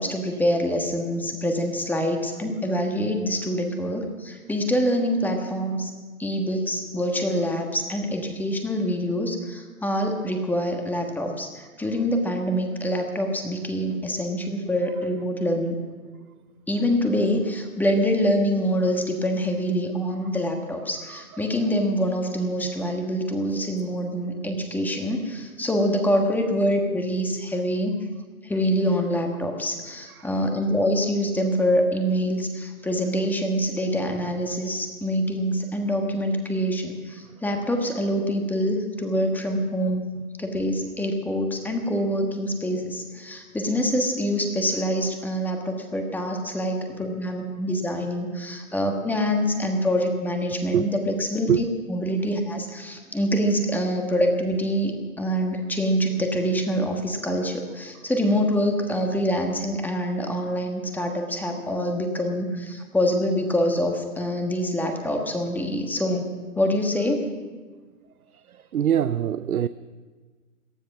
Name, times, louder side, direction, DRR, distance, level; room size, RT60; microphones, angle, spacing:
voice 1, 0.0-5.9 6.2-15.7 16.7-27.9 28.4-40.1 40.4-66.3 66.6-67.3, equal, 5° left, 1.4 m, -25 dB
voice 2, 68.7-69.7, right 10 dB, 85° right, 0.6 m, -22 dB
18.5 x 13.0 x 6.0 m
hypercardioid pair, 130°, 43 cm